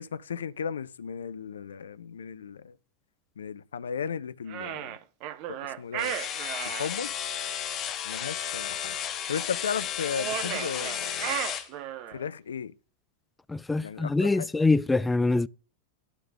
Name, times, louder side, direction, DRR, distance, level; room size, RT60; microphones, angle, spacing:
voice 1, 0.0-2.8 3.4-5.0 5.5-6.1 6.6-7.1 8.0-9.0 9.3-11.3 12.1-12.7 13.8-14.5, left 7 dB, 65° left, 0.6 m, -35 dB
sound 1, 4.5-6.9 10.1-12.2, right 11 dB, 45° right, 0.8 m, -35 dB
sound 2, 6.0-11.7, left 9 dB, 35° left, 1.0 m, -33 dB
voice 2, 13.5-15.5, left 3 dB, 10° left, 0.4 m, -24 dB
11.5 x 3.9 x 6.4 m
figure-of-eight pair, 90°, 0 cm